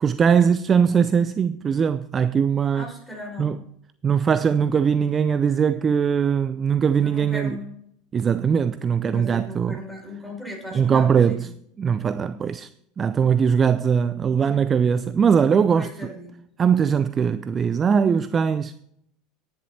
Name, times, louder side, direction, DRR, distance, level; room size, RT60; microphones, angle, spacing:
voice 1, 0.0-2.9 3.4-3.6 4.0-7.6 8.1-9.8 10.7-11.5 11.8-12.7 13.0-16.1 16.6-18.7, right 7 dB, 30° right, 0.4 m, -21 dB
voice 2, 2.7-3.5 7.0-7.7 9.1-11.4 12.3-12.5 15.8-16.3, left 1 dB, 5° right, 5.1 m, -37 dB
10.5 x 10.5 x 4.2 m
hypercardioid pair, 80°, 0 cm